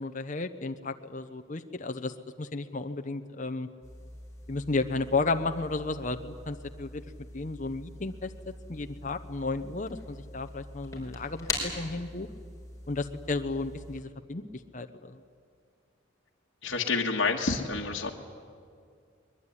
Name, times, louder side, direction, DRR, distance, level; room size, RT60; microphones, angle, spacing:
voice 1, 0.0-3.7 4.5-7.0 7.3-12.3 12.9-14.4 14.7-15.2, left 3 dB, 40° left, 7 dB, 0.8 m, -33 dB
sound 1, 3.8-14.0, left 2 dB, 15° left, 4.9 m, -42 dB
voice 2, 16.6-18.1, left 4 dB, 60° left, -1 dB, 1.7 m, -28 dB
22.0 x 21.5 x 10.0 m, 2.2 s
head